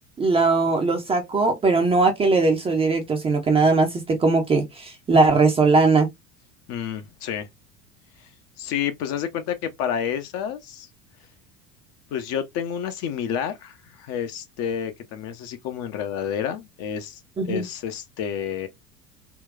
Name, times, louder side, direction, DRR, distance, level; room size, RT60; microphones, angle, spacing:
voice 1, 0.2-6.1 17.4-17.6, right 3 dB, 15° right, 0.5 m, -20 dB
voice 2, 6.7-7.5 8.2-8.3 8.6-10.9 12.1-18.7, left 8 dB, 35° left, 0.5 m, -30 dB
3.7 x 2.2 x 2.3 m
figure-of-eight pair, 75°, 46 cm